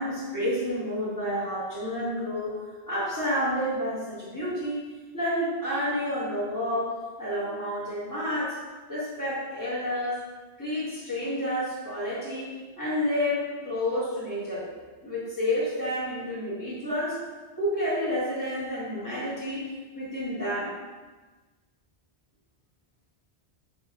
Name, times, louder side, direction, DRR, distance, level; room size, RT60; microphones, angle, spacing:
voice 1, 0.0-2.6 2.9-4.8 5.1-8.6 8.9-10.2 10.6-14.7 15.0-17.2 17.6-19.6 19.9-20.7, equal, 20° left, -10 dB, 1.3 m, -29 dB
3.2 x 3.0 x 3.6 m, 1.3 s
omnidirectional pair, 1.1 m